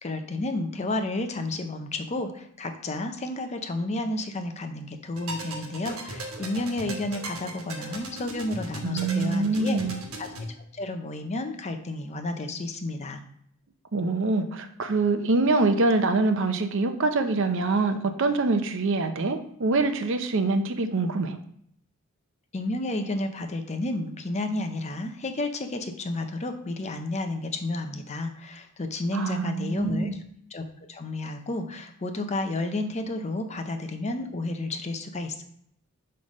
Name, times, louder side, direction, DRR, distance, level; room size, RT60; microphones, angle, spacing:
voice 1, 0.0-9.8 10.2-10.3 10.7-13.2 22.5-30.2 30.5-35.4, left 2 dB, 30° left, 6 dB, 0.6 m, -31 dB
sound 1, 5.1-10.5, right 1 dB, 85° right, 1.2 m, -38 dB
voice 2, 8.8-10.0 13.9-21.4 29.1-30.2, right 3 dB, 60° right, 8 dB, 0.6 m, -25 dB
5.5 x 3.3 x 5.2 m, 0.68 s
head